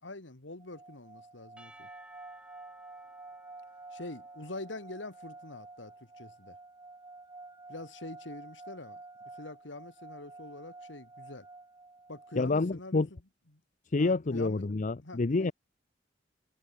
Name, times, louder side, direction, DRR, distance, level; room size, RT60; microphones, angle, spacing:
voice 1, 0.0-1.9 3.9-6.6 7.7-9.0 9.4-11.5 12.1-13.2 13.5-13.6 14.0-14.7 15.0-15.5, left 2 dB, 70° left, 2.5 m, -44 dB
sound 1, 0.6-12.5, right 3 dB, 20° right, 6.4 m, -50 dB
Percussion / Church bell, 1.6-5.7, right 1 dB, 5° right, 5.5 m, -57 dB
voice 2, 12.4-13.1 13.9-15.5, left 3 dB, 40° left, 0.6 m, -28 dB
head